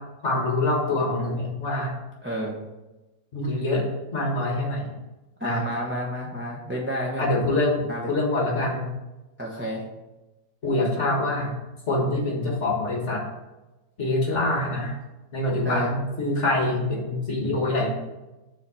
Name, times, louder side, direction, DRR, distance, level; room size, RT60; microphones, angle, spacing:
voice 1, 0.2-1.9 3.3-3.8 4.1-4.9 5.4-5.6 7.2-8.9 10.6-11.5 11.9-13.2 14.0-15.0 15.3-17.9, left 2 dB, 40° left, -1 dB, 1.6 m, -25 dB
voice 2, 2.2-2.6 5.4-7.3 7.9-8.1 9.4-9.8 15.6-15.9, equal, 10° right, -3 dB, 0.7 m, -30 dB
7.2 x 3.8 x 5.5 m, 1.1 s
omnidirectional pair, 2.0 m